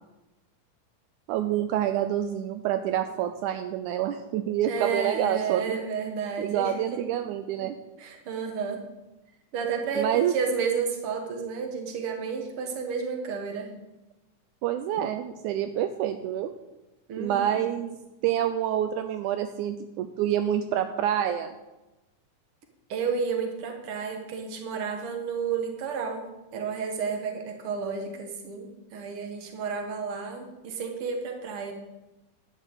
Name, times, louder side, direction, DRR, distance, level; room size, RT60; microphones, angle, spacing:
voice 1, 1.3-5.6 6.4-7.8 10.0-10.3 14.6-16.5 17.2-18.0 18.2-21.6, right 11 dB, 80° right, 8 dB, 2.0 m, -27 dB
voice 2, 4.6-7.0 8.0-8.8 9.5-13.7 17.1-17.6 22.9-26.3 26.5-31.7, right 5 dB, 50° right, 4 dB, 2.1 m, -31 dB
11.0 x 6.4 x 8.0 m, 1.0 s
omnidirectional pair, 3.6 m